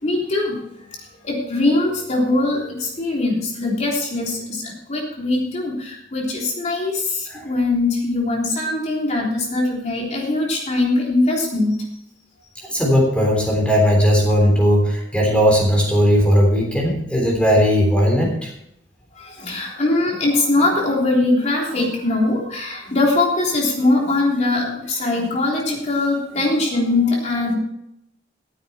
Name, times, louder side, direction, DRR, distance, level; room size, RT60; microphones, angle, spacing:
voice 1, 0.0-0.5 1.2-4.4 4.9-7.0 7.5-11.7 19.4-27.5, left 2 dB, 40° left, -2 dB, 3.5 m, -21 dB
voice 2, 12.7-18.5, equal, 5° left, -1 dB, 3.4 m, -17 dB
14.5 x 9.6 x 4.3 m, 0.76 s
head